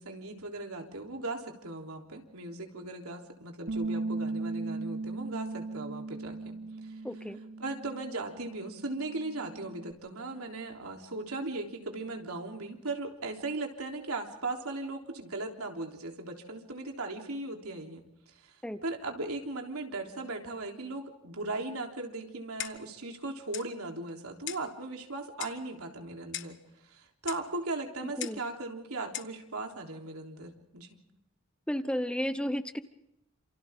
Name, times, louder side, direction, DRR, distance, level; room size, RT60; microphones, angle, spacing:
voice 1, 0.0-6.6 6.8-7.0 7.6-18.0 18.4-18.6 18.8-26.6 26.8-31.0, right 2 dB, 90° right, 2 dB, 3.5 m, -38 dB
Bass guitar, 3.7-9.9, right 3 dB, 50° right, 2.0 m, -38 dB
voice 2, 7.0-7.4 18.6-18.8 28.2-28.4 31.7-32.8, equal, 5° left, 11 dB, 0.8 m, -32 dB
Clock, 22.6-23.0 23.5-23.7 24.5-24.7 25.4-25.7 26.3-26.6 27.3-27.5 28.2-28.5 29.1-29.4, left 12 dB, 55° left, 1.1 m, -39 dB
29.0 x 27.5 x 3.7 m, 0.85 s
head